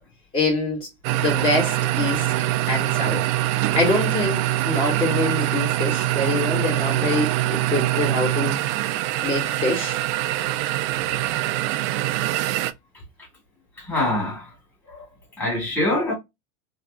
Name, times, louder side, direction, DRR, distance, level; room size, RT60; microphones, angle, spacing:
voice 1, 0.3-0.9 1.2-2.3 2.7-3.2 3.7-8.6 9.2-10.0, left 2 dB, 30° left, 2.0 m, -25 dB
sound 1, 1.0-12.7, right 15 dB, 60° right, 0.4 m, -24 dB
voice 2, 9.1-9.5 10.4-10.6 11.0-11.2 11.9-12.1 13.8-14.5 14.9-15.0 15.4-16.1, left 1 dB, 10° left, 2.0 m, -27 dB
3.5 x 3.0 x 2.4 m
supercardioid pair, 150°, 17 cm